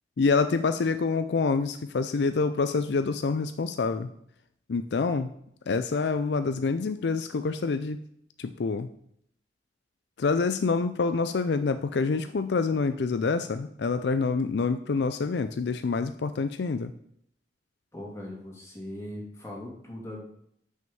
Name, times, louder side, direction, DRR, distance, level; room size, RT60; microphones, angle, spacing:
voice 1, 0.2-4.1 4.7-5.3 5.7-8.0 8.4-8.9 10.2-16.9, left 4 dB, 70° left, 10 dB, 0.5 m, -27 dB
voice 2, 17.9-20.2, left 1 dB, 15° left, -2 dB, 2.5 m, -39 dB
6.3 x 5.6 x 7.0 m, 0.70 s
head